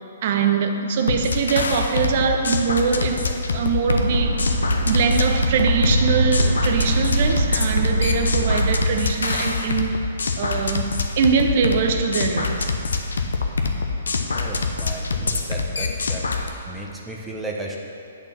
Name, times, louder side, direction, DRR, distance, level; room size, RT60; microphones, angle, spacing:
voice 1, 0.2-4.4 4.8-10.1 10.4-10.9 11.2-12.7, right 6 dB, 50° right, 5 dB, 0.8 m, -23 dB
sound 1, 1.1-16.5, left 4 dB, 80° left, 0.7 m, -25 dB
sound 2, 3.8-8.9, right 1 dB, 90° right, 0.8 m, -22 dB
voice 2, 14.3-16.3 16.7-17.8, right 2 dB, 5° right, -2 dB, 0.9 m, -34 dB
8.3 x 4.4 x 7.0 m, 2.6 s
hypercardioid pair, 135°, 0 cm